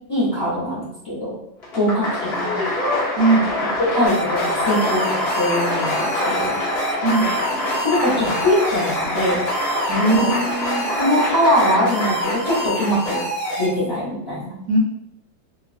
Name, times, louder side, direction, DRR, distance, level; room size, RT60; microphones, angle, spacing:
voice 1, 0.1-1.4 1.7-2.1 2.4-2.6 3.6-6.6 7.8-9.4 10.0-10.3 11.0-13.2 13.6-14.6, left 1 dB, 20° left, -12 dB, 0.8 m, -22 dB
Applause, 1.6-13.5, left 2 dB, 50° left, 0.9 m, -25 dB
voice 2, 3.2-3.5 7.0-7.3 9.9-10.9 14.7-14.8, right 2 dB, 70° right, -2 dB, 1.0 m, -19 dB
sound 1, 4.1-13.7, right 1 dB, 65° left, 1.2 m, -27 dB
2.9 x 2.4 x 2.4 m, 0.77 s
omnidirectional pair, 1.8 m